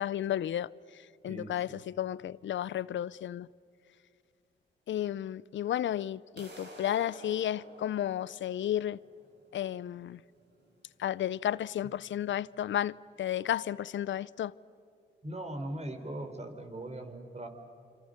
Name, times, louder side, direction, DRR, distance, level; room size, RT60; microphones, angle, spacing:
voice 1, 0.0-3.5 4.9-9.0 9.5-10.2 11.0-14.5, left 11 dB, 75° left, 0.6 m, -33 dB
voice 2, 1.3-1.8 15.2-17.5, right 1 dB, 35° right, 4.0 m, -40 dB
sound 1, 6.4-12.3, right 1 dB, 60° right, 6.6 m, -53 dB
27.5 x 26.5 x 6.6 m
cardioid pair, 55°, 20 cm